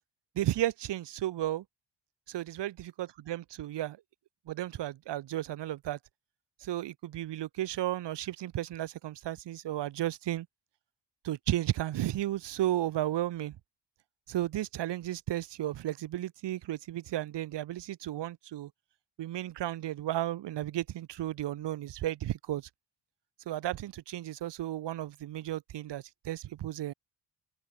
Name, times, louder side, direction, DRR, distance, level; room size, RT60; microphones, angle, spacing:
voice 1, 0.4-1.6 2.3-4.0 4.5-6.0 6.6-10.5 11.2-13.6 14.3-18.7 19.2-22.7 23.5-26.9, right 13 dB, 75° right, 1.9 m, -34 dB
cardioid pair, 140°, 42 cm